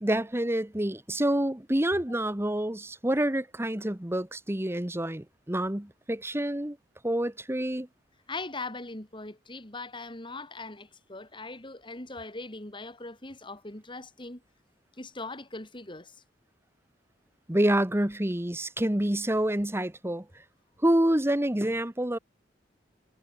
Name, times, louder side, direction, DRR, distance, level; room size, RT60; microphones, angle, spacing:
voice 1, 0.0-6.8 7.0-7.9 17.5-20.2 20.8-22.2, right 1 dB, 15° right, 1.3 m, -27 dB
voice 2, 8.3-14.4 15.0-16.2, left 3 dB, 30° left, 3.9 m, -40 dB
head